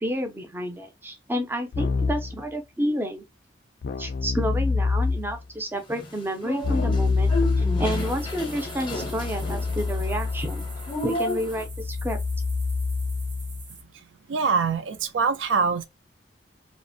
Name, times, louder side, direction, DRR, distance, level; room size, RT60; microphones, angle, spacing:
voice 1, 0.0-3.2 4.0-7.3 7.6-10.7 11.0-12.2, equal, 10° right, 0.4 m, -30 dB
Keyboard (musical), 1.7-2.4 3.8-5.4 6.6-13.7, left 4 dB, 55° left, 0.3 m, -27 dB
sound 1, 5.9-11.6, left 1 dB, 30° left, 0.6 m, -33 dB
sound 2, 7.9-13.8, right 5 dB, 70° right, 0.8 m, -46 dB
voice 2, 14.3-15.9, right 5 dB, 90° right, 0.4 m, -24 dB
2.5 x 2.1 x 2.5 m
head